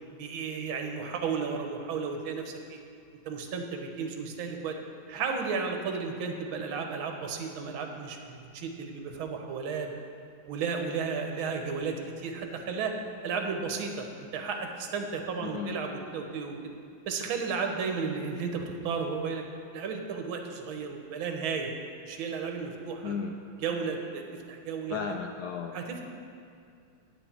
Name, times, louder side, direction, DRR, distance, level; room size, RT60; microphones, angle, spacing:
voice 1, 0.2-2.8 3.2-4.8 5.1-9.9 10.5-12.9 13.2-16.6 17.1-19.4 19.7-21.7 22.1-23.1 23.6-25.0 25.7-26.0, right 5 dB, 75° right, 4 dB, 1.8 m, -33 dB
voice 2, 15.4-15.8 23.0-23.4 24.9-25.8, left 6 dB, 75° left, 3 dB, 0.9 m, -34 dB
9.6 x 9.2 x 4.4 m, 2.4 s
omnidirectional pair, 2.3 m